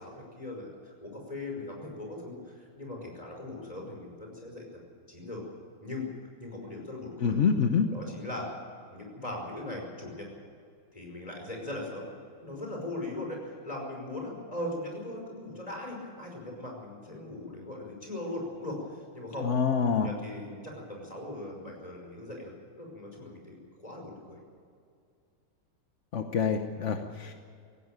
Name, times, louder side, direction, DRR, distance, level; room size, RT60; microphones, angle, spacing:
voice 1, 0.0-5.4 5.8-6.1 6.4-7.4 7.9-8.5 8.9-10.3 10.9-12.1 12.4-19.5 19.8-24.4, left 1 dB, 15° left, 0 dB, 5.5 m, -39 dB
voice 2, 7.2-7.9 19.4-20.1 26.1-27.4, left 6 dB, 50° left, 6 dB, 0.9 m, -26 dB
18.5 x 15.5 x 9.0 m, 2.3 s
omnidirectional pair, 2.4 m